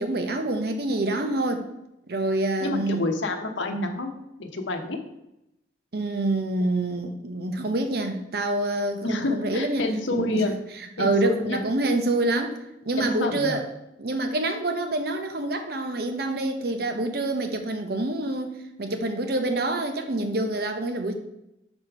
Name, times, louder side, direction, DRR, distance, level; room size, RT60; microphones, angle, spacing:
voice 1, 0.0-1.6 2.1-3.1 5.9-10.4 11.0-12.6 12.8-13.7 14.0-18.5 18.8-21.1, right 2 dB, 55° right, 6 dB, 0.8 m, -26 dB
voice 2, 2.6-4.1 4.4-5.0 9.0-10.5 11.0-11.6 13.0-13.6, left 2 dB, 85° left, 4 dB, 0.9 m, -28 dB
4.9 x 4.4 x 5.8 m, 0.87 s
head